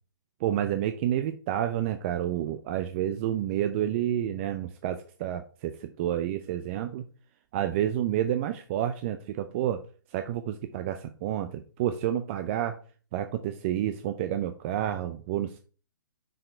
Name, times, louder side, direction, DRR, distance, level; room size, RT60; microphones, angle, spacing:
voice 1, 0.4-7.0 7.5-9.8 10.1-12.8 13.1-15.6, right 11 dB, 35° right, 8 dB, 0.5 m, -29 dB
6.2 x 4.6 x 4.4 m, 0.39 s
hypercardioid pair, 140°, 12 cm